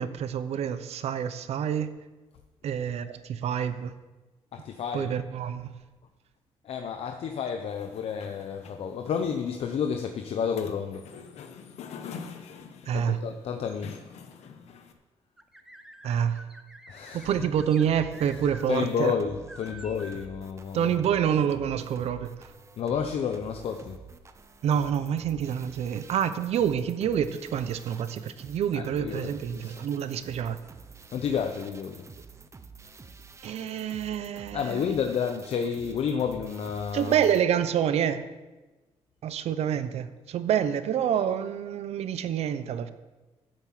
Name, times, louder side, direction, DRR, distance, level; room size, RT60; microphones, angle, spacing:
voice 1, 0.0-1.9 2.6-3.9 4.9-5.7 12.9-13.2 16.0-16.4 17.1-19.1 20.7-22.5 24.6-30.6 33.4-34.8 36.9-38.3 39.2-42.9, right 9 dB, 75° right, 12 dB, 0.8 m, -27 dB
voice 2, 4.5-5.1 6.6-11.1 12.9-14.0 16.9-17.3 18.7-21.0 22.8-24.0 28.7-29.9 31.1-32.1 34.5-37.2, left 7 dB, 65° left, 5 dB, 0.9 m, -30 dB
sound 1, 7.7-14.9, left 6 dB, 85° left, 1.2 m, -46 dB
sound 2, 15.4-18.7 19.0-19.1 19.5-20.3, right 1 dB, 5° right, 0.9 m, -48 dB
sound 3, 17.5-37.4, right 5 dB, 25° right, 0.8 m, -49 dB
11.5 x 7.6 x 7.6 m, 1.2 s
cardioid pair, 125°, 11 cm